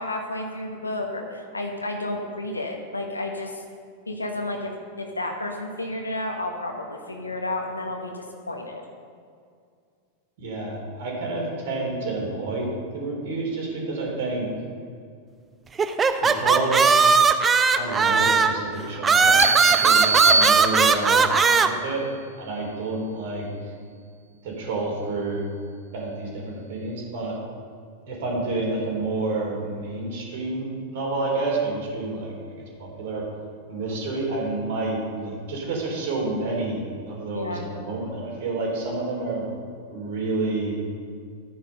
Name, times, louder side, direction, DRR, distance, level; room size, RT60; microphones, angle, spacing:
voice 1, 0.0-3.6 4.1-8.8 37.3-37.7, left 2 dB, 80° left, 3 dB, 1.3 m, -31 dB
voice 2, 10.4-14.5 16.2-17.1 17.8-22.0 22.4-23.5 24.4-25.4 25.9-27.4 28.1-33.2 33.7-39.5 39.9-40.8, right 2 dB, 55° right, -1 dB, 3.8 m, -29 dB
sound 1, 15.8-18.6 19.0-21.7, right 5 dB, 20° right, 0.7 m, -18 dB
sound 2, 19.4-21.3, right 4 dB, 80° right, 0.7 m, -22 dB
12.5 x 9.6 x 5.5 m, 2.2 s
figure-of-eight pair, 90°, 0 cm